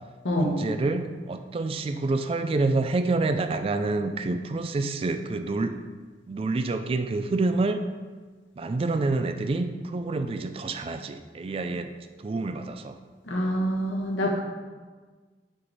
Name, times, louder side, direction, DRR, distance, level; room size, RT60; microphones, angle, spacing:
voice 1, 0.4-5.8 6.3-7.8 8.6-11.9 12.2-13.0, right 3 dB, 30° right, 8 dB, 0.3 m, -27 dB
voice 2, 13.3-14.4, equal, 85° left, 0 dB, 1.1 m, -26 dB
5.9 x 4.8 x 4.0 m, 1.4 s
head